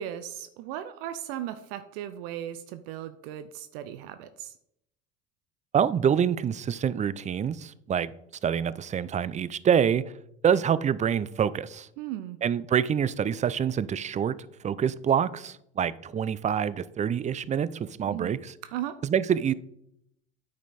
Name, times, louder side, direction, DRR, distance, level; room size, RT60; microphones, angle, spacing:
voice 1, 0.0-4.5 12.0-12.4 18.1-18.4 18.7-19.0, right 11 dB, 70° right, 0.6 m, -37 dB
voice 2, 5.7-8.1 8.4-10.0 10.4-11.9 12.4-14.4 14.6-18.5 19.0-19.5, right 8 dB, 25° right, 0.4 m, -26 dB
9.1 x 5.2 x 4.2 m
hypercardioid pair, 75°, 30 cm